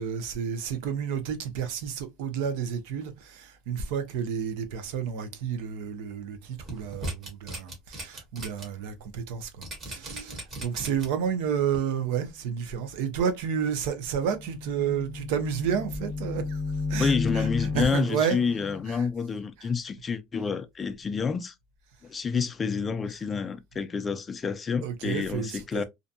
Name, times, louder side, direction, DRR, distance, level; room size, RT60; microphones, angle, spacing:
voice 1, 0.0-16.6 16.9-18.4 18.9-19.1 19.6-19.7 24.8-25.8, right 7 dB, 70° right, 0.6 m, -31 dB
sound 1, 6.6-8.6 9.0-9.1 9.6-11.3 11.7-11.8, right 1 dB, 30° right, 1.2 m, -37 dB
sound 2, 14.1-18.8, left 4 dB, 10° right, 1.0 m, -33 dB
voice 2, 17.0-21.5 22.0-25.8, left 5 dB, 20° left, 0.3 m, -29 dB
2.5 x 2.2 x 2.5 m
supercardioid pair, 145°, 0 cm